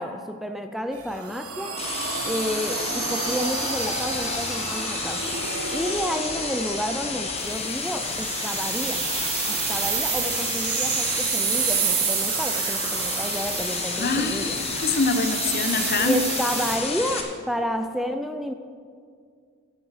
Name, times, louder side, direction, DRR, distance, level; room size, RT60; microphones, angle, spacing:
voice 1, 0.0-1.8 2.2-5.3 5.7-9.1 9.5-14.6 16.0-18.5, equal, ahead, 7 dB, 0.3 m, -30 dB
sound 1, 0.9-16.8, right 6 dB, 80° right, 1.6 m, -29 dB
sound 2, 1.8-17.2, left 4 dB, 30° left, 1.2 m, -31 dB
voice 2, 14.0-16.2, left 3 dB, 45° left, 8 dB, 0.8 m, -25 dB
13.0 x 9.2 x 4.8 m, 2.2 s
head